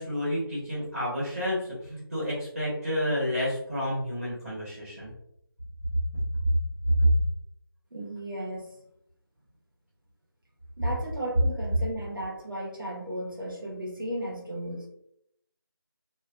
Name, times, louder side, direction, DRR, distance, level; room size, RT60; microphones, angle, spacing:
voice 1, 0.0-5.1 6.3-6.5 7.0-7.1, equal, 35° right, -9 dB, 0.9 m, -29 dB
voice 2, 7.9-8.7 10.8-14.9, right 1 dB, 60° right, -3 dB, 0.9 m, -35 dB
2.3 x 2.2 x 2.4 m, 0.74 s
figure-of-eight pair, 175°, 13 cm